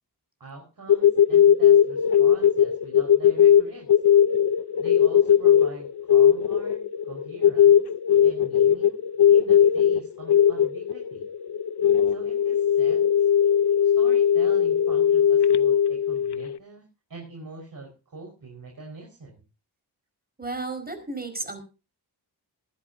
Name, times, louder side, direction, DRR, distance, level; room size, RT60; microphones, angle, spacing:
voice 1, 0.4-3.9 4.8-7.8 8.2-9.0 9.3-11.3 12.1-13.1 13.8-19.4, right 3 dB, 55° right, 0 dB, 5.0 m, -44 dB
sound 1, 0.9-16.6, left 9 dB, 70° left, 0.8 m, -19 dB
voice 2, 20.4-21.6, right 3 dB, 20° right, 7 dB, 5.0 m, -33 dB
20.0 x 14.5 x 2.7 m, 0.32 s
wide cardioid pair, 140°, 40 cm